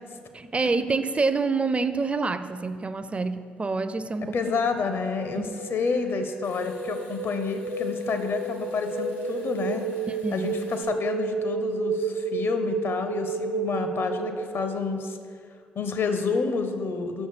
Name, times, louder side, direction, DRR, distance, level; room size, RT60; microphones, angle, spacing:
voice 1, 0.3-4.3 5.3-5.5 10.1-10.5, right 4 dB, 25° right, 11 dB, 0.4 m, -27 dB
voice 2, 4.3-9.8 10.3-15.2 15.7-17.3, left 4 dB, 50° left, 8 dB, 0.7 m, -29 dB
sound 1, 4.8-14.7, right 4 dB, 85° right, 0.5 m, -31 dB
Water tap faucet / Sink (filling or washing) / Trickle dribble, 5.3-10.8, left 2 dB, 80° left, 1.8 m, -55 dB
6.5 x 6.4 x 4.7 m, 2.1 s
figure-of-eight pair, 45°, 5 cm